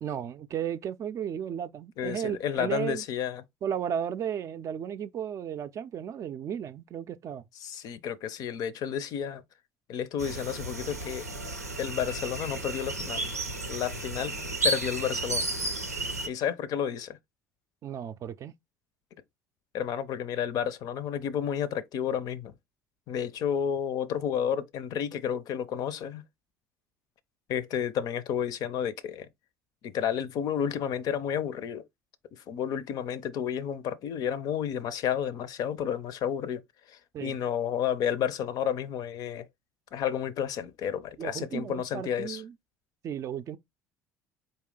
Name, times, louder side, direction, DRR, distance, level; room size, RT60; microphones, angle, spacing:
voice 1, 0.0-3.0 3.6-7.4 17.8-18.5 37.1-37.3 41.2-42.5 43.0-43.6, right 9 dB, 40° right, 0.4 m, -34 dB
voice 2, 2.0-3.4 7.6-9.4 9.9-11.2 11.8-13.2 13.7-14.4 14.6-15.5 16.3-17.2 19.7-22.5 23.1-26.2 27.5-29.3 29.8-31.8 32.3-36.6 36.9-39.5 39.9-42.4, left 8 dB, 50° left, 0.5 m, -31 dB
sound 1, 10.2-16.3, right 2 dB, 90° right, 0.6 m, -33 dB
4.1 x 2.8 x 3.7 m
figure-of-eight pair, 60°, 8 cm